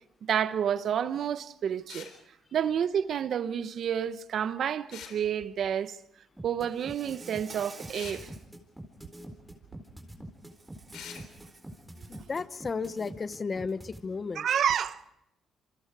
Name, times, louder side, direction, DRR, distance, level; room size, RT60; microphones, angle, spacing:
voice 1, 0.3-2.1 2.5-6.0 6.4-8.3 14.3-15.0, right 8 dB, 65° right, 1.0 m, -29 dB
sound 1, 1.9-2.2 4.9-5.2 7.9-8.2 10.9-11.2, left 8 dB, 80° left, 3.8 m, -44 dB
sound 2, 6.4-14.0, right 1 dB, 5° right, 4.0 m, -44 dB
Insect, 6.7-8.5 8.9-9.2 10.5-12.3, right 3 dB, 25° right, 4.2 m, -50 dB
voice 2, 12.1-14.5, left 4 dB, 35° left, 1.0 m, -34 dB
28.0 x 24.5 x 4.9 m
cardioid pair, 90°, 0 cm